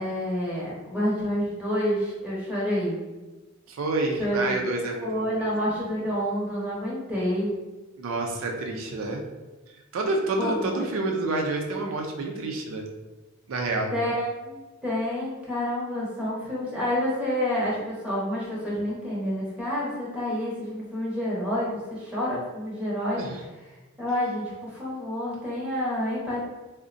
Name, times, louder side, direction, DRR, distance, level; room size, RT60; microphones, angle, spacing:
voice 1, 0.0-3.0 4.2-4.6 5.0-7.5 10.4-11.0 13.9-23.3 24.0-26.4, equal, 5° right, -7 dB, 0.8 m, -28 dB
voice 2, 3.7-5.5 8.0-9.2 9.9-12.8 13.5-13.9 23.2-23.4, right 2 dB, 75° right, 1 dB, 0.4 m, -28 dB
3.7 x 2.1 x 2.5 m, 1.2 s
head